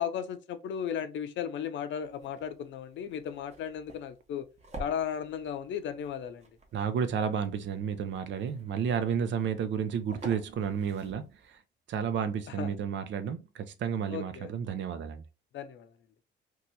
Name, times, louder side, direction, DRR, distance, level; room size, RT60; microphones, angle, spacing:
voice 1, 0.0-4.5 4.8-6.4 12.5-12.7 14.1-14.5 15.5-15.9, left 8 dB, 70° left, 0.5 m, -35 dB
sound 1, 2.0-11.6, right 1 dB, 35° right, 1.1 m, -50 dB
voice 2, 6.7-11.6 11.9-15.2, right 7 dB, 65° right, 0.6 m, -31 dB
2.7 x 2.3 x 4.0 m
cardioid pair, 90°, 20 cm